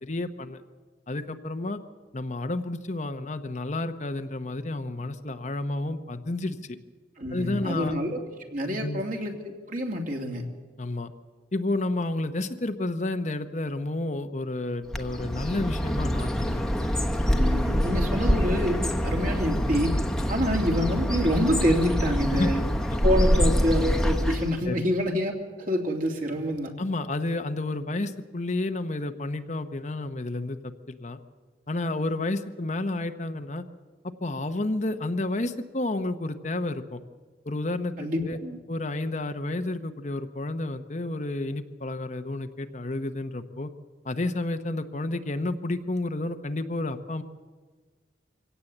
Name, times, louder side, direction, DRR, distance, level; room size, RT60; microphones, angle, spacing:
voice 1, 0.0-0.6 1.1-1.8 2.1-6.8 7.3-7.9 8.8-9.0 10.8-11.1 11.5-16.7 20.2-20.3 22.3-22.5 24.6-24.8 26.8-31.2 31.7-33.6 34.2-37.0 37.4-37.9 38.2-38.4 38.7-43.7 44.0-47.2, left 2 dB, 40° left, 8 dB, 0.9 m, -30 dB
voice 2, 7.2-8.2 8.5-10.4 17.4-18.8 19.0-20.0 20.3-22.6 23.0-25.3 25.6-26.7 38.0-38.6, equal, 50° right, 1 dB, 2.8 m, -27 dB
Bird, 14.9-24.6, equal, 5° left, 1.1 m, -25 dB
24.0 x 17.0 x 7.9 m, 1.5 s
head